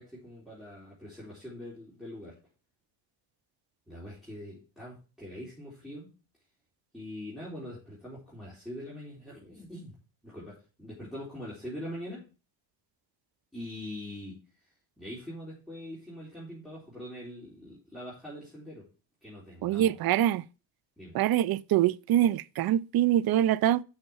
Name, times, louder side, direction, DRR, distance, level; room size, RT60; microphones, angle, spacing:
voice 1, 0.0-2.4 3.9-6.1 6.9-9.9 10.2-12.3 13.5-14.4 15.0-18.9 19.2-20.0 21.0-21.2, left 1 dB, ahead, 3.9 m, -43 dB
voice 2, 19.6-20.4 21.1-23.8, right 12 dB, 55° right, 0.5 m, -24 dB
6.6 x 5.6 x 7.0 m
cardioid pair, 115°, 46 cm